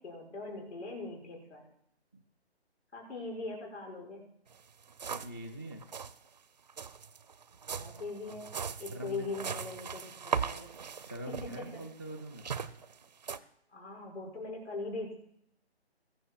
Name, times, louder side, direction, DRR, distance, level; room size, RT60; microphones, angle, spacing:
voice 1, 0.0-1.7 2.9-4.2 7.7-10.7 11.3-11.8 13.7-15.2, left 3 dB, 85° left, -2 dB, 5.6 m, -41 dB
sound 1, 4.5-4.6 4.8-5.5 5.7-6.2 6.7-13.4, right 6 dB, 40° right, 0.5 m, -39 dB
voice 2, 5.2-5.8 8.9-9.3 10.9-12.4, right 1 dB, 15° left, 0 dB, 0.4 m, -43 dB
21.0 x 7.1 x 4.5 m, 0.72 s
hypercardioid pair, 160°, 33 cm